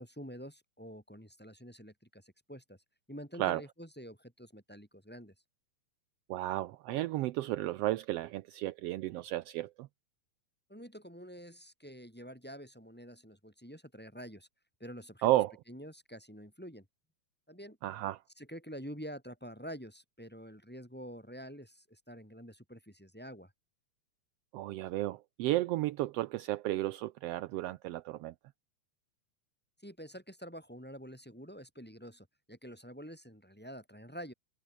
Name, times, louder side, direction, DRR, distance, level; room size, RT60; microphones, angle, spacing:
voice 1, 0.0-2.8 3.1-5.3 10.7-14.5 14.8-15.3 15.7-16.9 17.5-17.8 18.4-23.5 29.8-34.3, equal, 5° left, 4.5 m, -47 dB
voice 2, 6.3-9.9 15.2-15.5 17.8-18.2 24.5-28.3, right 16 dB, 80° right, 1.4 m, -33 dB
omnidirectional pair, 3.4 m